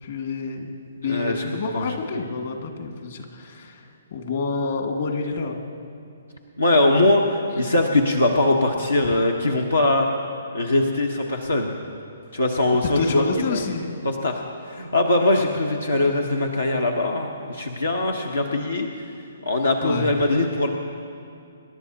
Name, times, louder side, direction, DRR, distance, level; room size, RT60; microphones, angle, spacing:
voice 1, 0.0-5.6 9.0-9.1 13.0-14.0 19.8-20.5, left 4 dB, 60° left, 3 dB, 2.0 m, -28 dB
voice 2, 1.0-1.4 1.7-1.8 6.6-10.1 10.5-11.7 12.3-13.2 13.5-13.6 14.0-14.4 14.7-18.9 19.4-20.7, left 2 dB, 90° left, 1 dB, 1.1 m, -21 dB
26.5 x 11.0 x 2.9 m, 2.4 s
figure-of-eight pair, 130°, 0 cm